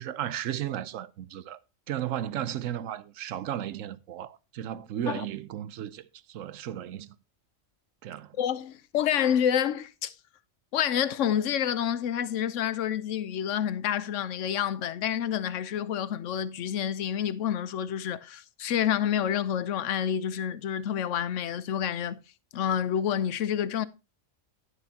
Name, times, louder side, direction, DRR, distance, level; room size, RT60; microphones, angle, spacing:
voice 1, 0.0-1.6 1.9-7.1 8.0-8.3, right 11 dB, 90° right, 1.0 m, -34 dB
voice 2, 8.4-10.1 10.7-22.2 22.5-23.9, left 9 dB, 75° left, 1.0 m, -28 dB
11.0 x 9.7 x 2.8 m
omnidirectional pair, 1.3 m